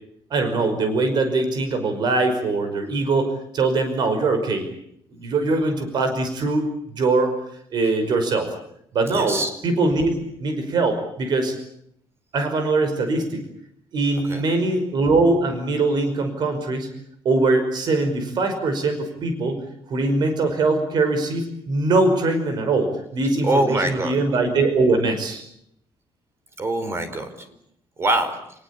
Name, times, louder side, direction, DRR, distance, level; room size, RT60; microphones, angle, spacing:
voice 1, 0.3-4.7 5.1-6.7 7.0-7.3 7.7-8.5 8.9-9.4 9.6-11.6 12.3-13.4 13.9-16.9 17.2-25.4, right 3 dB, 50° right, 7 dB, 5.4 m, -22 dB
voice 2, 9.1-9.5 14.2-14.5 23.4-24.2 26.6-27.3 28.0-28.4, right 2 dB, 30° right, 10 dB, 4.7 m, -23 dB
30.0 x 19.5 x 8.5 m, 0.74 s
cardioid pair, 155°, 9 cm